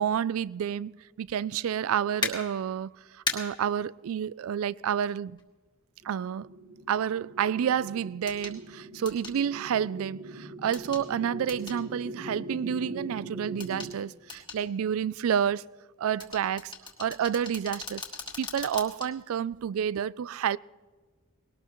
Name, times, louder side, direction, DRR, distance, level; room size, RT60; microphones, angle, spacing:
voice 1, 0.0-2.9 3.3-5.4 6.0-6.5 6.9-15.7 16.0-16.7 17.0-18.0 18.4-20.6, right 8 dB, 70° right, 0.3 m, -29 dB
sound 1, 2.2-2.3 3.3-3.4 5.4-5.5 8.3-8.5 9.1-9.4 10.7-11.0 11.5-11.8 13.6-13.9 14.3-14.6 16.2-19.1 19.5-19.6, left 4 dB, 20° left, 1.8 m, -36 dB
sound 2, 6.0-13.9, right 1 dB, 55° right, 3.8 m, -42 dB
20.5 x 18.0 x 3.0 m
head